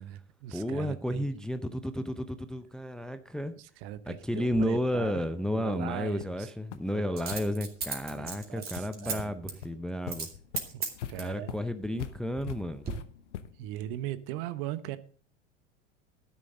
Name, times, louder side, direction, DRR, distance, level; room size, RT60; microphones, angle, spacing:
voice 1, 0.0-1.2 3.6-5.2 5.5-6.5 6.9-7.6 8.1-9.6 10.7-11.6 13.6-15.0, right 13 dB, 50° right, 1.0 m, -39 dB
voice 2, 0.5-3.5 4.1-10.3 11.2-12.8, equal, ahead, 0.6 m, -32 dB
Coin (dropping), 4.5-4.6 7.2-9.2 9.5-9.6 10.1-10.3 10.6-11.4 12.0-12.5 12.8-12.9, right 5 dB, 25° right, 2.8 m, -36 dB
sound 1, 5.7-5.8 6.2-6.4 6.7-6.8 7.3-7.4 7.8-7.9 8.3-8.4 8.8-9.3 9.6-9.7 10.1-13.7, left 10 dB, 75° left, 1.0 m, -42 dB
12.5 x 10.5 x 3.7 m
figure-of-eight pair, 85°, 36 cm